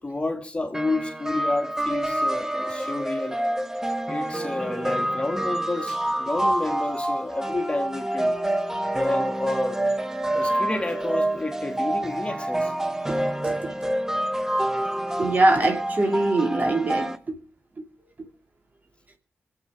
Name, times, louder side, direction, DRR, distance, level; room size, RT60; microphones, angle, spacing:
voice 1, 0.0-3.4 4.1-8.4 8.9-9.8 10.3-12.7, left 2 dB, 25° left, 2.4 m, -30 dB
sound 1, 0.7-17.2, right 1 dB, 10° right, 1.0 m, -27 dB
voice 2, 13.1-13.8 15.2-17.4 18.2-18.3, right 2 dB, 40° right, 2.7 m, -23 dB
25.0 x 8.5 x 5.0 m
wide cardioid pair, 90°, 4 cm